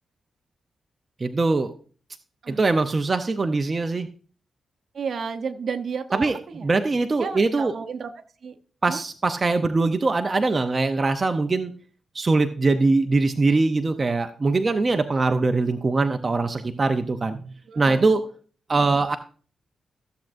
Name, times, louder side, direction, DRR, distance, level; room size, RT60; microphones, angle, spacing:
voice 1, 1.2-1.7 2.5-4.1 6.1-7.7 8.8-11.7 12.1-17.4 17.8-18.2 18.7-19.2, right 3 dB, 30° right, 7 dB, 0.6 m, -22 dB
voice 2, 4.9-6.7 7.2-8.1 8.4-8.6 8.9-9.0 17.7-18.1, right 6 dB, 60° right, 9 dB, 0.9 m, -32 dB
14.5 x 7.3 x 2.6 m, 0.42 s
cardioid pair, 95°, 0 cm